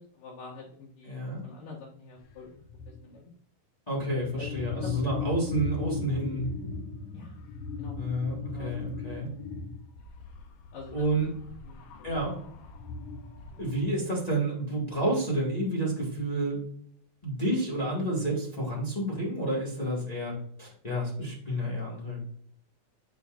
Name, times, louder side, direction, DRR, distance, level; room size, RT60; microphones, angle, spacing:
voice 1, 0.0-3.3 4.4-4.9 7.1-7.4 7.8-8.0 8.5-8.9 10.7-10.9 11.6-12.1, left 3 dB, 65° left, -6 dB, 2.8 m, -47 dB
voice 2, 1.0-1.4 3.9-6.5 8.0-9.3 10.9-11.3 12.0-12.4 13.6-16.6 17.2-22.2, right 1 dB, 30° left, -4 dB, 0.7 m, -30 dB
sound 1, 2.2-2.3 2.6-3.0 4.0-13.9, left 3 dB, 90° left, 1.4 m, -39 dB
9.6 x 5.1 x 2.5 m, 0.63 s
omnidirectional pair, 4.1 m